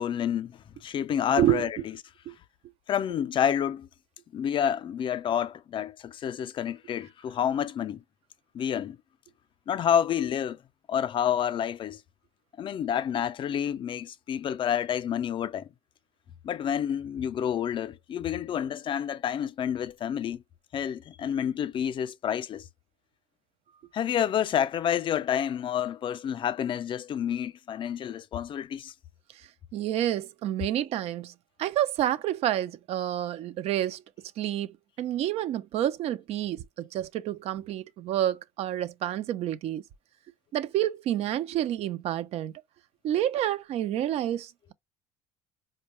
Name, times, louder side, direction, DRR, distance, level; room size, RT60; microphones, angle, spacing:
voice 1, 0.0-1.9 2.9-3.9 4.3-8.0 8.5-9.0 9.7-10.6 10.9-12.0 12.6-15.7 16.4-20.4 20.7-22.7 23.9-28.9, left 9 dB, 45° left, 0.4 m, -29 dB
voice 2, 29.7-31.3 31.6-34.0 34.4-39.8 40.5-42.5 43.0-44.7, right 12 dB, 60° right, 0.4 m, -29 dB
4.4 x 2.2 x 2.9 m
supercardioid pair, 90°, 12 cm